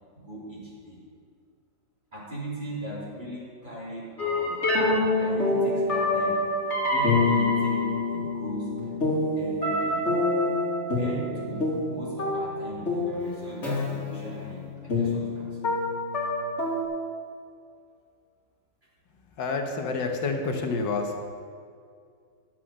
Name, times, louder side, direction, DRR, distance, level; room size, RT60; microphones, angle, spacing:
voice 1, 0.1-1.0 2.1-6.4 6.8-10.1 10.9-15.7, right 1 dB, 25° right, -7 dB, 3.4 m, -39 dB
sound 1, 4.2-16.8, left 2 dB, 40° left, 2.4 m, -26 dB
voice 2, 19.4-21.1, left 4 dB, 75° left, 3 dB, 1.8 m, -28 dB
11.0 x 7.4 x 6.4 m, 2.2 s
omnidirectional pair, 2.0 m